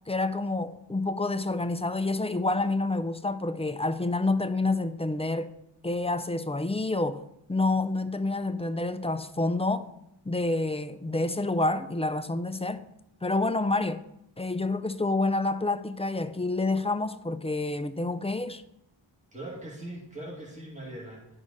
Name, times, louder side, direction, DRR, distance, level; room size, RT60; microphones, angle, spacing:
voice 1, 0.1-5.5 5.8-9.9 10.3-12.9 13.2-14.0 14.4-18.6, left 2 dB, 15° left, 0.4 m, -28 dB
voice 2, 19.3-21.4, right 1 dB, 15° right, 2.2 m, -41 dB
11.0 x 4.9 x 4.0 m
wide cardioid pair, 45°, 48 cm